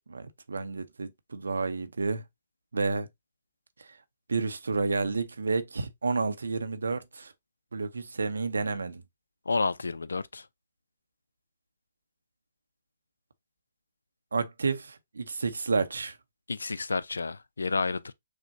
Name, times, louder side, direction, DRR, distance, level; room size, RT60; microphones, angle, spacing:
voice 1, 0.1-2.2 2.7-3.1 4.3-7.3 7.7-9.0 14.3-16.2, right 4 dB, 85° right, 0.6 m, -30 dB
voice 2, 9.5-10.5 16.5-18.1, left 4 dB, 90° left, 0.3 m, -30 dB
6.2 x 2.2 x 2.6 m
hypercardioid pair, 140°, 0 cm